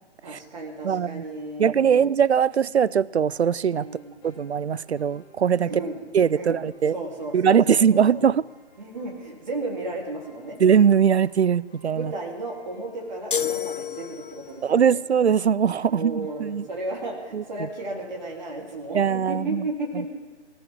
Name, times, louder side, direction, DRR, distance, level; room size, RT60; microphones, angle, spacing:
voice 1, 0.2-2.1 3.8-4.3 5.6-6.0 6.3-6.6 6.9-8.3 8.8-10.6 12.0-15.0 15.9-20.1, right 2 dB, 40° right, 3.5 m, -34 dB
voice 2, 0.8-1.2 1.6-3.9 4.2-5.7 6.1-7.0 7.3-8.4 10.6-12.1 14.6-16.6 17.3-17.4 18.9-19.7 19.9-20.1, right 7 dB, 70° right, 0.5 m, -21 dB
sound 1, 3.5-18.4, left 3 dB, 15° left, 3.2 m, -57 dB
sound 2, 13.3-14.7, left 8 dB, 50° left, 0.5 m, -29 dB
25.5 x 13.5 x 3.7 m
figure-of-eight pair, 140°, 34 cm